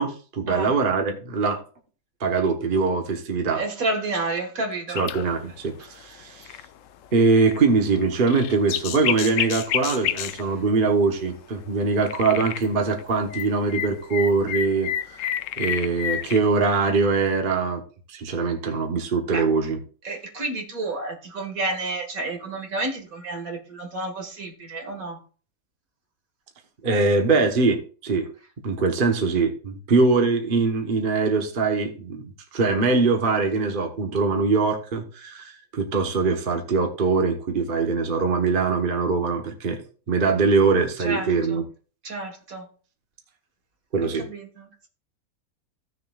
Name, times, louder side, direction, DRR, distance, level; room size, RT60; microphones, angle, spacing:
voice 1, 0.0-1.6 2.2-3.6 4.9-6.5 7.1-14.9 15.6-17.8 18.1-19.8 26.8-28.3 28.6-39.8 40.1-41.6 43.9-44.3, right 4 dB, 40° right, 4 dB, 1.3 m, -22 dB
voice 2, 3.5-5.0 19.3-19.4 20.0-25.2 41.0-41.6 42.0-42.7 44.1-44.9, right 2 dB, 70° right, 3 dB, 2.2 m, -30 dB
sound 1, 5.0-5.4 5.8-5.9 6.4-6.6 7.4-7.7 8.0-10.4 12.0-12.7 12.9-16.4, left 10 dB, 70° left, 0.9 m, -29 dB
15.5 x 6.7 x 2.4 m, 0.39 s
omnidirectional pair, 1.5 m